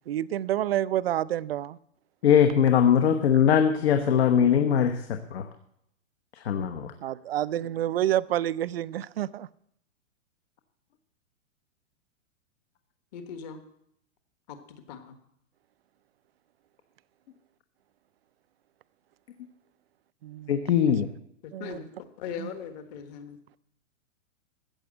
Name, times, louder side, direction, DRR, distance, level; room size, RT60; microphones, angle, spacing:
voice 1, 0.1-1.8 7.0-9.5 20.2-20.5 21.5-21.8 22.4-22.5, right 12 dB, 50° right, 0.5 m, -28 dB
voice 2, 2.2-5.4 6.4-6.9 20.5-21.1, left 8 dB, 50° left, 1.2 m, -21 dB
voice 3, 13.1-13.6 14.5-15.2 21.4-23.4, left 7 dB, 30° left, 1.4 m, -40 dB
14.5 x 8.2 x 7.7 m
hypercardioid pair, 165°, 40 cm